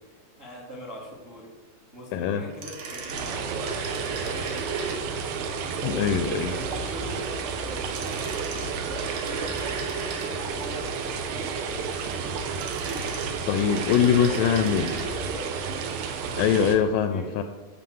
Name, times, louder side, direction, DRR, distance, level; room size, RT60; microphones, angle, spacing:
voice 1, 0.1-1.5 1.9-3.8 4.1-5.0 6.3-7.2 7.6-12.0 13.8-15.5 17.1-17.3, equal, 40° right, -2 dB, 0.7 m, -41 dB
voice 2, 2.1-2.5 5.8-6.5 13.5-15.0 16.4-17.4, left 8 dB, 85° left, 8 dB, 2.0 m, -23 dB
sound 1, 2.5-5.3 7.7-10.6 12.3-15.1 15.4-15.5, right 4 dB, 65° right, 2.6 m, -37 dB
sound 2, 3.1-16.8, right 5 dB, 90° right, 2.9 m, -31 dB
11.5 x 4.2 x 7.7 m, 1.2 s
omnidirectional pair, 4.3 m